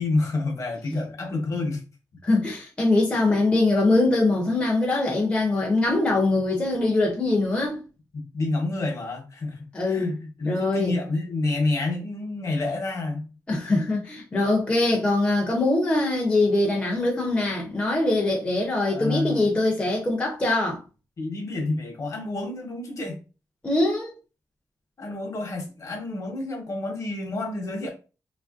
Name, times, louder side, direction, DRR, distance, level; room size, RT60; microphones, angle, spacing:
voice 1, 0.0-1.8 8.3-9.6 9.8-13.3 18.9-19.5 21.2-23.2 25.0-27.9, left 2 dB, 45° left, 0.9 m, -28 dB
voice 2, 2.2-7.8 9.7-10.2 10.5-10.9 13.5-20.8 23.6-24.1, left 2 dB, 15° left, 0.5 m, -23 dB
3.0 x 2.4 x 2.4 m
wide cardioid pair, 175°, 7 cm